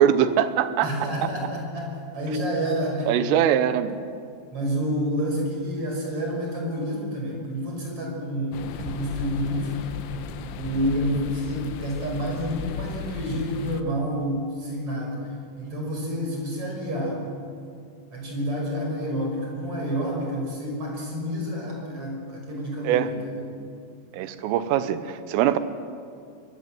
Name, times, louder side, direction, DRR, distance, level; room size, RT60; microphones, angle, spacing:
voice 1, 0.0-0.9 3.1-4.0 22.9-23.1 24.1-25.6, right 10 dB, 90° right, 12 dB, 3.6 m, -22 dB
voice 2, 0.8-3.2 4.5-9.9 10.5-15.3 15.6-17.2 18.1-23.5, equal, 30° right, 0 dB, 6.3 m, -29 dB
sound 1, 8.5-13.8, left 7 dB, 80° left, 3.5 m, -36 dB
23.5 x 22.0 x 7.7 m, 2.4 s
omnidirectional pair, 5.7 m